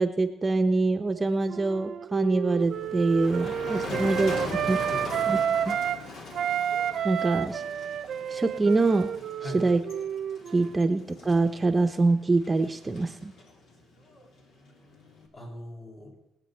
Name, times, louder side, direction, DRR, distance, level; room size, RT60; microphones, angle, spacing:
voice 1, 0.0-4.3 4.7-4.8 5.3-5.4 5.7-5.8 7.0-7.6 8.3-9.1 9.5-9.8 10.5-13.3, right 3 dB, 25° right, 7 dB, 0.8 m, -24 dB
Wind instrument woodwind instrument, 1.5-6.0 6.3-10.8, right 9 dB, 65° right, 0.6 m, -30 dB
Motor vehicle (road), 2.6-15.3, left 3 dB, 70° left, 2.5 m, -41 dB
voice 2, 3.8-5.2 6.4-6.5 9.4-9.7 15.3-16.1, left 1 dB, 45° left, -2 dB, 5.7 m, -41 dB
24.5 x 8.3 x 4.4 m, 0.90 s
cardioid pair, 90°, 0 cm